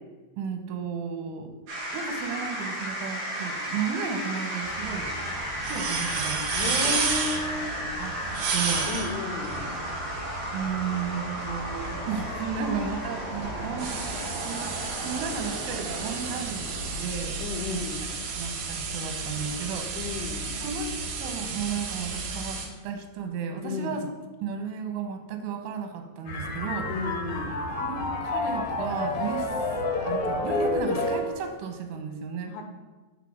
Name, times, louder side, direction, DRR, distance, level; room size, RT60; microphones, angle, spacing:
voice 1, 0.4-1.5 1.9-5.1 5.6-6.7 8.0-8.1 8.5-8.9 9.6-9.7 10.5-14.0 14.4-17.4 17.7-20.1 20.5-24.0 24.4-26.9 27.8-29.6 29.9-32.6, right 6 dB, 90° right, 5 dB, 3.3 m, -34 dB
sound 1, 1.7-18.0, equal, 55° right, 3.2 m, -34 dB
sound 2, 4.6-22.7, right 4 dB, 70° right, 2.8 m, -33 dB
voice 2, 6.5-7.7 8.9-9.7 17.4-18.1 20.0-20.6 23.6-24.0 26.9-27.6 32.5-32.6, left 4 dB, 85° left, 3 dB, 2.8 m, -33 dB
sound 3, 26.3-31.5, left 2 dB, 65° left, 1.9 m, -29 dB
8.2 x 3.5 x 6.2 m, 1.3 s
omnidirectional pair, 5.2 m